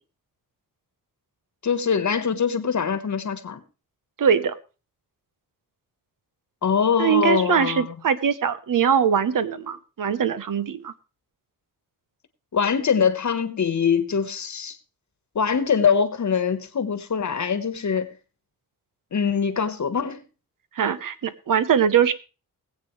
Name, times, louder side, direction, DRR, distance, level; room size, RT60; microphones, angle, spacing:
voice 1, 1.6-3.6 6.6-7.9 12.5-14.8 15.3-18.1 19.1-20.2, left 6 dB, 50° left, 1.3 m, -23 dB
voice 2, 4.2-4.5 7.0-10.9 20.8-22.1, right 8 dB, 60° right, 1.0 m, -22 dB
20.5 x 8.3 x 3.2 m
wide cardioid pair, 105°, 36 cm